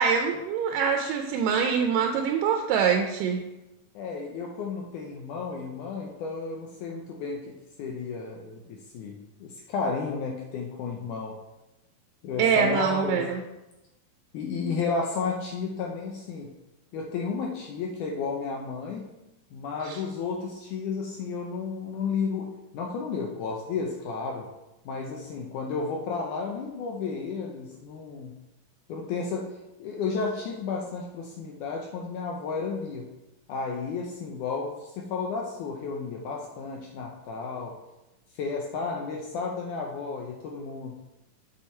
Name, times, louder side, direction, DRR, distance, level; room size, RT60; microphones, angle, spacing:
voice 1, 0.0-3.4 12.4-13.4 19.8-20.0, right 6 dB, 80° right, 4 dB, 2.0 m, -24 dB
voice 2, 4.0-11.4 12.2-13.3 14.3-16.5 16.9-19.1 19.5-24.5 24.9-28.4 28.9-33.1 33.5-37.8 38.4-41.0, left 5 dB, 75° left, 0 dB, 1.8 m, -32 dB
7.2 x 5.3 x 4.4 m, 0.98 s
omnidirectional pair, 4.2 m